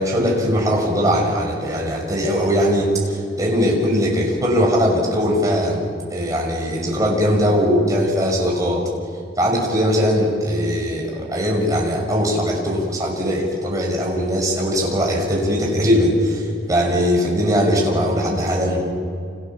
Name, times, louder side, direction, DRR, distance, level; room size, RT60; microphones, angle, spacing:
voice 1, 0.0-5.8 6.1-8.8 9.4-18.8, equal, 20° right, -1 dB, 6.0 m, -20 dB
29.5 x 27.5 x 7.3 m, 2.4 s
head